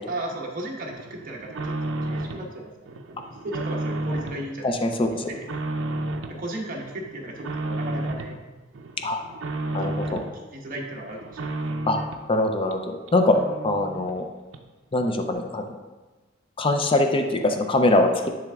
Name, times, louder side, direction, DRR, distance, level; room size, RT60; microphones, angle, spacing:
voice 1, 0.1-1.8 2.0-4.7 5.1-5.5 6.3-8.4 9.6-10.2 10.5-11.5, right 1 dB, 45° right, -1 dB, 1.2 m, -35 dB
sound 1, 0.9-2.5 2.8-4.4 4.8-6.4 6.8-8.4 8.7-10.3 10.7-12.3 12.7-12.8 13.1-13.2 13.3-14.2 14.5-14.6, right 2 dB, 80° right, 0.6 m, -32 dB
voice 2, 4.6-5.2 9.0-9.2 9.7-10.2 11.9-12.0 12.3-13.4 13.6-14.3 14.9-15.8 16.6-18.3, left 2 dB, 25° left, 5 dB, 0.5 m, -22 dB
10.0 x 3.4 x 3.5 m, 1.2 s
head